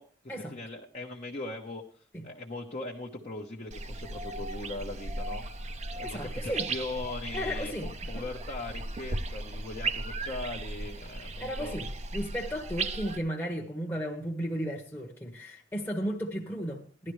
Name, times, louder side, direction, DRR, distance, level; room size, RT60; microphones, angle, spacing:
voice 1, 0.0-1.8 2.2-5.4 5.9-11.8, left 2 dB, 35° left, 1.0 m, -40 dB
sound 1, 3.7-13.2, right 2 dB, 35° right, 0.7 m, -36 dB
voice 2, 6.0-6.7 7.3-8.2 11.4-17.1, equal, 10° left, 1.2 m, -35 dB
16.5 x 12.0 x 3.2 m
head